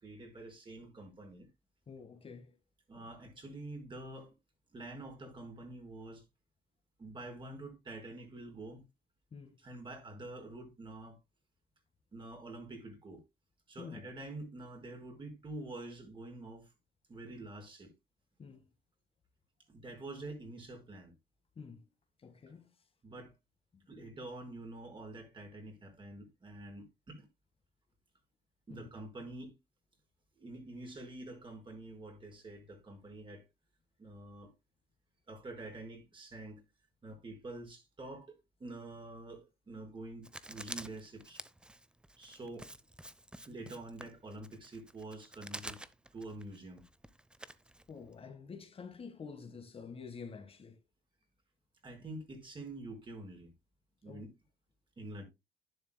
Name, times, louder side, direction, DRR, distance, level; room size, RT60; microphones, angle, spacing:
voice 1, 0.0-1.5 2.9-4.3 4.7-6.2 7.0-8.9 9.6-11.2 12.1-13.2 13.7-16.7 17.1-17.9 19.7-21.1 23.0-23.3 23.9-27.3 28.7-29.6 30.4-33.4 34.0-34.5 35.3-36.6 37.0-41.4 42.2-42.7 43.4-45.8 46.1-46.8 51.8-53.5 54.0-54.3 55.0-55.2, right 2 dB, 30° right, 4.8 m, -47 dB
voice 2, 1.9-2.5 9.3-9.6 13.8-14.0 18.4-18.6 21.6-21.8 22.2-22.7 23.7-23.8 28.7-28.9 47.9-50.8 54.0-54.2, left 5 dB, 35° left, 1.7 m, -48 dB
Writing, 40.2-48.2, right 1 dB, 5° right, 0.8 m, -49 dB
11.0 x 10.0 x 2.2 m
cardioid pair, 110°, 17 cm